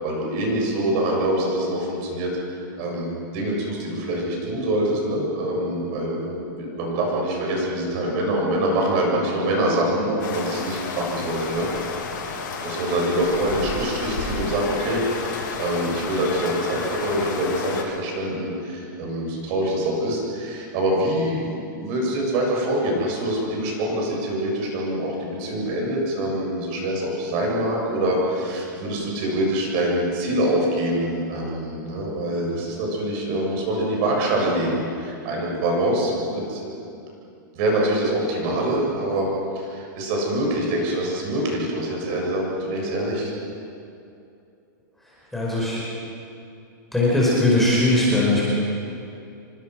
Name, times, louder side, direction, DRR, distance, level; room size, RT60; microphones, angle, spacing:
voice 1, 0.0-2.3 2.8-11.7 12.6-37.0 37.5-43.3, right 1 dB, 35° right, -2 dB, 7.6 m, -25 dB
sound 1, 10.2-17.8, left 4 dB, 75° left, 6.1 m, -31 dB
voice 2, 45.3-45.8 46.9-48.5, left 2 dB, ahead, -7 dB, 4.9 m, -19 dB
28.0 x 24.5 x 6.3 m, 2.6 s
supercardioid pair, 170°, 11 cm